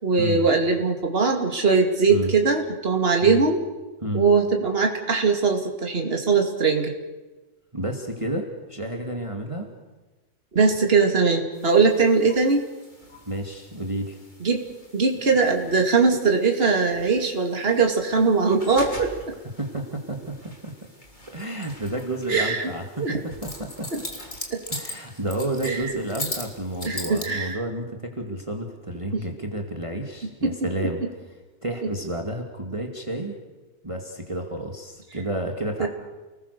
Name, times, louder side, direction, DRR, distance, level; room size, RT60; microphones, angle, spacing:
voice 1, 0.0-3.6 4.1-6.9 10.5-12.7 14.4-14.7 14.9-19.1 22.3-22.7 23.0-23.2 24.5-24.6 25.6-25.9 26.9-27.6 29.1-29.2 30.4-30.5 35.8-35.9, right 4 dB, 45° right, 2 dB, 2.8 m, -21 dB
voice 2, 7.7-9.7 13.3-14.2 19.6-20.7 21.3-24.1 24.7-31.0 31.3-31.4 31.6-33.4 33.8-35.9, right 1 dB, 20° right, 2 dB, 2.3 m, -31 dB
sound 1, 11.5-27.5, left 1 dB, 30° left, 3.6 m, -41 dB
30.0 x 20.0 x 6.8 m, 1.2 s
omnidirectional pair, 1.5 m